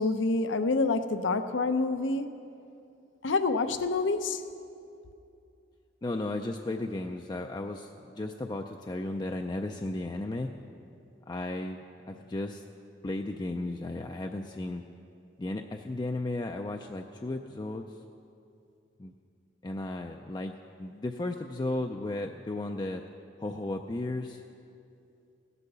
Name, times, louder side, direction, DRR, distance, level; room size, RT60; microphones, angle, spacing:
voice 1, 0.0-2.4 3.2-4.5, left 3 dB, 80° left, 10 dB, 0.7 m, -27 dB
voice 2, 6.0-10.5 11.3-12.6 13.0-14.8 15.4-18.0 19.0-19.1 19.6-23.0 23.4-24.4, left 2 dB, 20° left, 4 dB, 0.4 m, -35 dB
16.5 x 8.3 x 6.8 m, 2.6 s
head